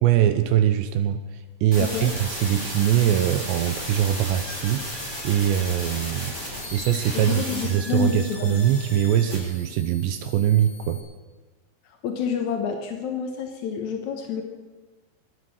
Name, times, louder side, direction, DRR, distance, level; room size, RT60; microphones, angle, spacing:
voice 1, 0.0-6.4 6.7-11.0, right 10 dB, 80° right, 10 dB, 2.9 m, -22 dB
sound 1, 1.7-11.0, equal, 5° right, 5.3 m, -35 dB
voice 2, 1.8-2.1 7.1-8.6 12.0-14.4, left 6 dB, 75° left, 3 dB, 1.7 m, -28 dB
24.5 x 9.2 x 6.4 m, 1.2 s
omnidirectional pair, 5.2 m